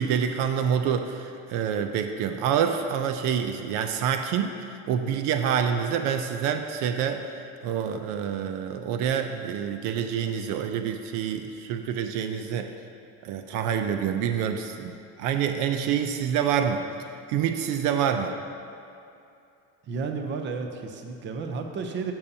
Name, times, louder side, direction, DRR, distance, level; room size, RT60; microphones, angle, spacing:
voice 1, 0.0-7.3 7.6-12.7 13.2-16.8 17.3-18.3, right 8 dB, 80° right, 7 dB, 0.6 m, -27 dB
voice 2, 19.8-22.1, right 4 dB, 35° right, 5 dB, 0.7 m, -32 dB
12.0 x 7.2 x 2.8 m, 2.6 s
cardioid pair, 150°, 32 cm